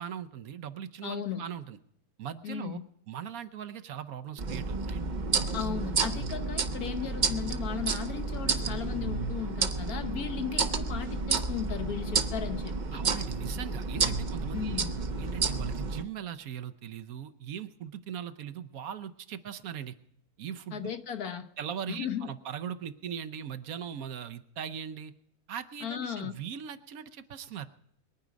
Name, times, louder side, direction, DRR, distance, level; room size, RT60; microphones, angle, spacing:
voice 1, 0.0-1.8 2.2-2.8 3.1-5.0 12.9-14.8 15.2-19.9 20.4-21.0 21.6-25.1 25.5-27.7, right 9 dB, 75° right, 9 dB, 1.2 m, -39 dB
voice 2, 1.0-1.4 2.4-2.8 5.5-13.0 14.5-14.9 20.7-21.5 21.9-22.3 25.8-26.3, left 8 dB, 80° left, 8 dB, 1.5 m, -36 dB
sound 1, 4.4-16.0, right 4 dB, 40° right, 0.7 m, -31 dB
22.0 x 9.4 x 5.1 m, 0.74 s
omnidirectional pair, 1.6 m